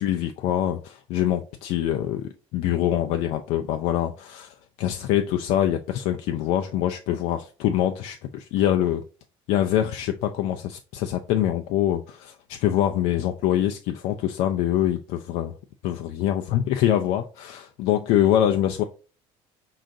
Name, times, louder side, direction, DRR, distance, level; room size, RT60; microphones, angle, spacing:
voice 1, 0.0-9.0 9.5-15.5 15.8-18.8, left 11 dB, 75° left, 6 dB, 0.4 m, -24 dB
4.7 x 3.8 x 2.6 m, 0.36 s
cardioid pair, 145°, 12 cm